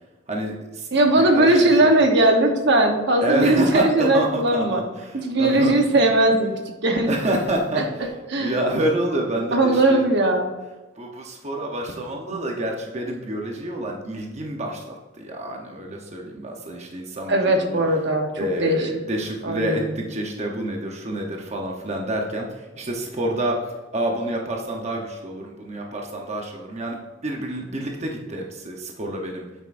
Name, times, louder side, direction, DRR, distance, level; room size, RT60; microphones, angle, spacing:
voice 1, 0.3-0.9 1.2-1.9 3.2-6.0 7.1-8.1 8.4-10.0 11.0-17.8 18.4-23.6 23.9-29.5, right 1 dB, 35° right, 0 dB, 0.8 m, -28 dB
voice 2, 0.9-4.8 5.1-6.5 6.8-7.1 7.7-7.8 8.3-8.6 9.5-10.4 17.3-18.3 18.6-18.9 19.4-20.0, right 2 dB, 55° right, 4 dB, 1.0 m, -19 dB
9.1 x 7.4 x 2.6 m, 1.1 s
head